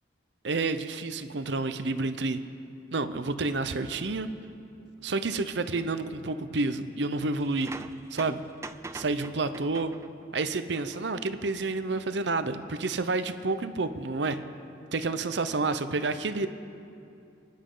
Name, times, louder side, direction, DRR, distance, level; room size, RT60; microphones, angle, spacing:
voice 1, 0.4-2.4 2.9-4.3 5.0-7.7 8.1-8.4 8.9-9.9 10.3-14.4 14.9-16.5, right 3 dB, 75° right, 10 dB, 0.8 m, -29 dB
sound 1, 7.4-10.3 10.7-11.0 12.6-12.7 14.2-14.5, right 3 dB, 15° right, 0.3 m, -44 dB
29.0 x 10.5 x 3.9 m, 2.6 s
head